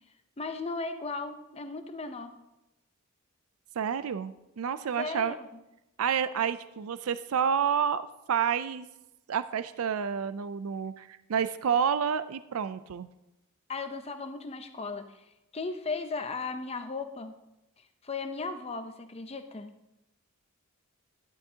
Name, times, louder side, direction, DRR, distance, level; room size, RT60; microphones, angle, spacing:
voice 1, 0.4-2.4 5.0-5.6 13.7-15.2 15.5-17.4 18.0-19.7, left 3 dB, 30° left, 7 dB, 0.7 m, -36 dB
voice 2, 3.8-5.4 6.0-8.9 9.3-13.1, right 7 dB, 75° right, 13 dB, 0.4 m, -29 dB
11.5 x 10.5 x 2.8 m, 0.92 s
head